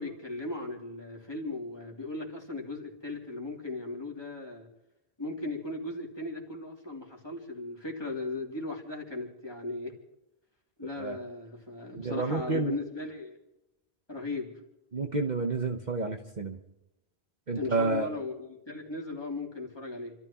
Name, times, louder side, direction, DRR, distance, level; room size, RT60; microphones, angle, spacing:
voice 1, 0.0-4.7 5.2-9.9 10.8-13.4 14.1-14.5 17.5-20.2, left 2 dB, 25° left, -1 dB, 3.1 m, -37 dB
voice 2, 12.0-12.7 14.9-16.6 17.5-18.1, right 3 dB, 45° right, 3 dB, 1.2 m, -30 dB
29.5 x 13.5 x 3.0 m, 0.91 s
omnidirectional pair, 1.1 m